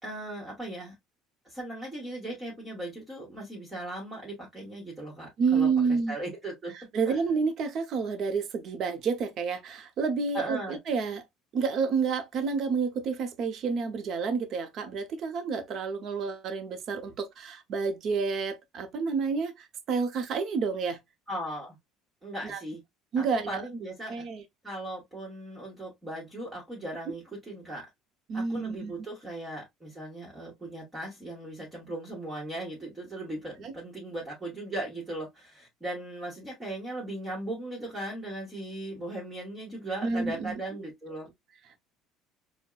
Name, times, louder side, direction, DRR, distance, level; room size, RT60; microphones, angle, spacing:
voice 1, 0.0-0.9 1.4-6.7 7.1-7.2 10.3-10.8 21.3-21.8 22.2-22.8 23.2-24.1 24.6-27.9 28.3-41.3, right 1 dB, 15° right, 1.2 m, -38 dB
voice 2, 5.4-6.2 6.9-11.2 11.5-21.0 22.4-22.6 23.1-23.6 24.1-24.4 28.3-28.9 33.6-33.7 40.0-40.6, right 5 dB, 45° right, 0.7 m, -29 dB
4.4 x 2.1 x 2.3 m
cardioid pair, 135°, 0 cm